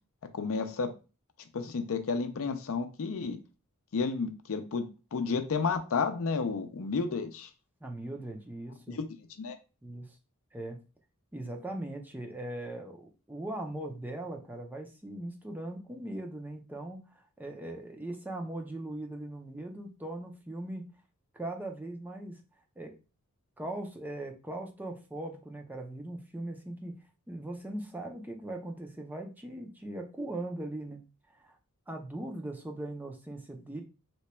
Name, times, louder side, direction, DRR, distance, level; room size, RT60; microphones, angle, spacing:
voice 1, 0.3-0.9 1.5-3.4 3.9-4.8 5.1-7.5 8.9-9.1 9.4-9.6, left 4 dB, 65° left, 0.5 m, -31 dB
voice 2, 7.8-9.0 9.8-10.2 10.5-10.8 11.3-20.9 21.3-22.4 22.8-22.9 23.6-27.0 27.3-31.0 31.3-31.6 31.9-33.8, right 1 dB, 10° right, 0.5 m, -39 dB
2.9 x 2.2 x 4.2 m
head